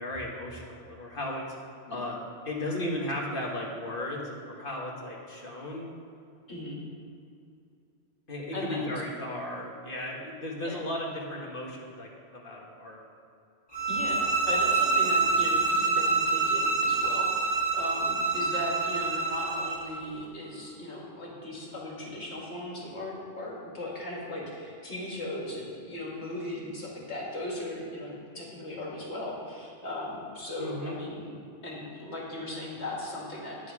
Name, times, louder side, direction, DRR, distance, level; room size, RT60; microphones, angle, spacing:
voice 1, 0.0-1.5 1.9-2.1 2.4-5.9 8.3-13.0 30.6-31.0, left 1 dB, 55° left, -2 dB, 1.8 m, -35 dB
voice 2, 8.5-8.8 10.6-10.8 13.9-33.7, left 1 dB, 90° left, -4 dB, 2.6 m, -37 dB
sound 1, 13.7-19.9, right 4 dB, 40° left, 2.5 m, -26 dB
11.0 x 8.4 x 4.9 m, 2.6 s
omnidirectional pair, 1.1 m